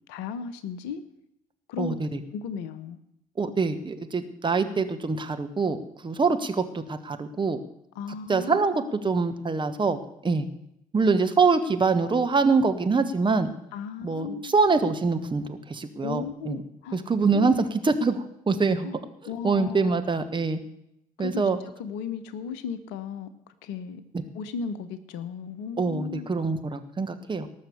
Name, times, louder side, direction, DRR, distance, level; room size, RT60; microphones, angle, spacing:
voice 1, 0.1-1.0 1.7-2.0 2.3-3.0 7.9-8.9 13.7-14.5 16.0-17.0 17.3-17.6 18.8-20.0 21.2-24.0 24.3-26.3, left 6 dB, 65° left, 14 dB, 1.0 m, -36 dB
voice 2, 1.8-2.2 3.4-7.6 8.3-10.5 10.9-13.5 14.0-16.6 16.9-17.6 17.8-18.9 19.4-20.6 21.2-21.6 25.8-27.5, right 4 dB, 25° right, 8 dB, 1.3 m, -24 dB
18.5 x 6.5 x 6.8 m, 0.79 s
figure-of-eight pair, 50°, 20 cm